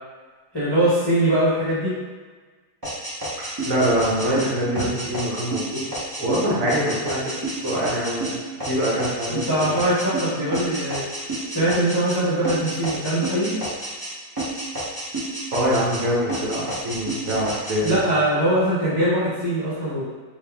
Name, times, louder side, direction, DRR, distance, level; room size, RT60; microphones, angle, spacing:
voice 1, 0.5-2.0 9.3-11.1 11.5-13.5 17.8-20.0, right 1 dB, 25° left, -11 dB, 0.5 m, -22 dB
sound 1, 2.8-12.2 12.4-14.1 14.4-16.0 16.3-18.0, right 2 dB, 25° right, 0.5 m, -30 dB
voice 2, 3.4-5.8 6.2-7.3 7.6-8.4 8.7-9.8 15.5-18.0, equal, 65° right, -6 dB, 1.3 m, -24 dB
3.3 x 2.4 x 3.4 m, 1.4 s
omnidirectional pair, 1.6 m